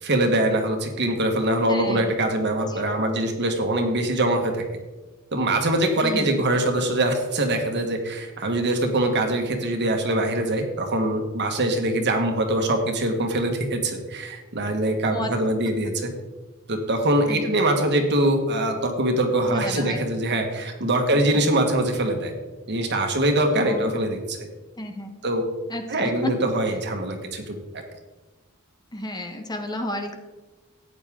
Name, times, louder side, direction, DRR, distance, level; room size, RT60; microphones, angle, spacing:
voice 1, 0.0-4.6 5.3-16.1 16.7-22.3 22.7-24.5 25.2-25.4 25.9-27.8, right 1 dB, 55° right, 4 dB, 1.7 m, -23 dB
voice 2, 1.7-2.2 2.6-2.8 6.0-6.3 15.1-15.3 15.6-15.7 17.3-17.5 19.5-20.0 21.1-21.2 23.4-23.9 24.8-25.2 25.7-26.5 28.9-30.2, left 1 dB, 20° left, 5 dB, 1.1 m, -32 dB
13.5 x 9.4 x 3.8 m, 1.2 s
head